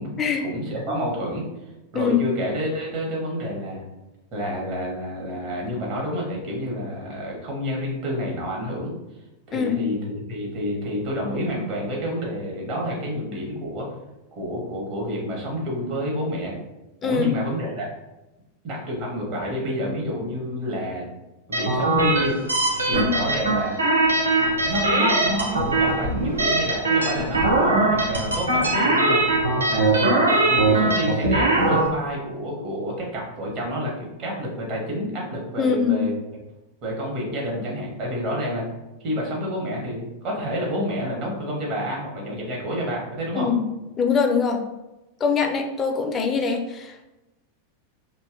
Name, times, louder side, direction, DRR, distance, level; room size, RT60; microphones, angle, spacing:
voice 1, 0.4-1.5 1.9-3.8 4.3-8.9 9.5-13.9 14.4-16.5 17.0-17.9 18.6-21.1 21.5-22.4 22.8-23.7 24.7-29.3 29.7-36.1 36.8-38.6 39.0-43.5, equal, 40° right, -2 dB, 0.9 m, -29 dB
voice 2, 9.5-9.9 17.0-17.3 22.9-23.2 35.6-36.1 43.4-43.6 44.0-44.6 45.2-47.0, left 6 dB, 25° left, 3 dB, 0.4 m, -23 dB
sound 1, 21.5-31.9, right 2 dB, 75° right, 0.4 m, -21 dB
2.6 x 2.2 x 2.4 m, 0.98 s
figure-of-eight pair, 90°, 0 cm